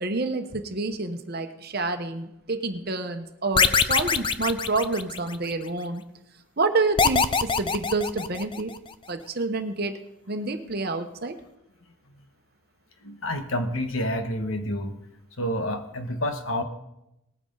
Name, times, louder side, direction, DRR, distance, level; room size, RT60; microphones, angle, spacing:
voice 1, 0.0-6.0 6.6-8.7 9.1-10.0 10.3-11.4, right 3 dB, 45° right, 7 dB, 1.0 m, -28 dB
sound 1, 3.6-5.5 7.0-8.8, left 5 dB, 25° left, 0.4 m, -23 dB
voice 2, 13.0-14.9 15.4-16.6, left 1 dB, 70° left, 6 dB, 1.4 m, -28 dB
19.5 x 9.3 x 3.9 m, 0.86 s
head